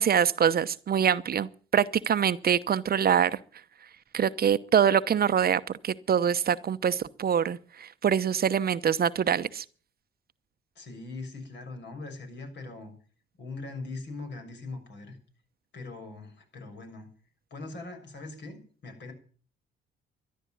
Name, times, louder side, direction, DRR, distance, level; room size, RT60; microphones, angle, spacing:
voice 1, 0.0-3.4 4.1-9.6, right 8 dB, 50° right, 0.9 m, -25 dB
voice 2, 10.7-12.9 13.4-15.2 15.7-17.1 17.5-19.1, left 3 dB, 60° left, 6.4 m, -41 dB
13.0 x 11.0 x 9.2 m
supercardioid pair, 65°, 21 cm